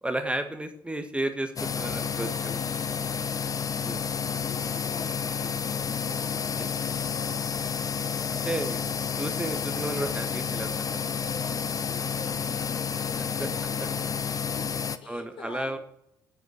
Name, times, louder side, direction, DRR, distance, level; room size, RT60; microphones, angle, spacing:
voice 1, 0.0-2.6 3.8-4.0 6.6-6.7 8.3-8.8 9.2-11.1 13.4-13.5 15.1-15.8, right 1 dB, 10° right, 7 dB, 1.5 m, -33 dB
sound 1, 1.6-15.0, left 6 dB, 35° left, 0.7 m, -30 dB
voice 2, 2.1-3.1 4.2-7.5 11.1-14.3 14.6-15.8, left 5 dB, 55° left, 8 dB, 1.3 m, -45 dB
9.7 x 8.0 x 7.3 m, 0.75 s
figure-of-eight pair, 45°, 11 cm